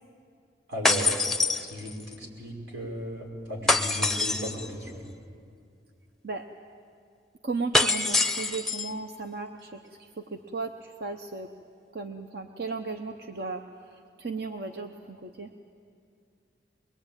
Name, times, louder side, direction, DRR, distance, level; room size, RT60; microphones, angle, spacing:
voice 1, 0.7-1.2 1.5-5.0, equal, 85° right, -1 dB, 5.5 m, -36 dB
sound 1, 0.8-2.1 3.7-4.7 7.7-8.9, left 3 dB, ahead, 0.7 m, -25 dB
voice 2, 7.4-11.5 11.9-15.5, right 3 dB, 55° right, 5 dB, 0.9 m, -36 dB
23.0 x 22.0 x 9.0 m, 2.3 s
head